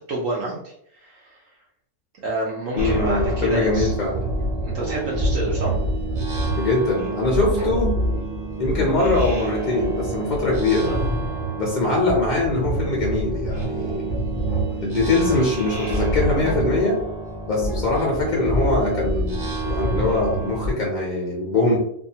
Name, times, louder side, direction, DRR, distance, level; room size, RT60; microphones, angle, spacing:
voice 1, 0.1-1.4 2.2-3.9 4.6-5.8, right 2 dB, 70° right, -3 dB, 0.9 m, -29 dB
voice 2, 2.8-4.2 6.6-7.9 8.6-10.9 11.6-14.1 14.8-17.0 17.5-21.8, left 2 dB, 55° left, -3 dB, 0.5 m, -22 dB
sound 1, 2.8-20.7, right 1 dB, 45° right, 0.9 m, -26 dB
2.7 x 2.4 x 2.7 m, 0.71 s
omnidirectional pair, 1.6 m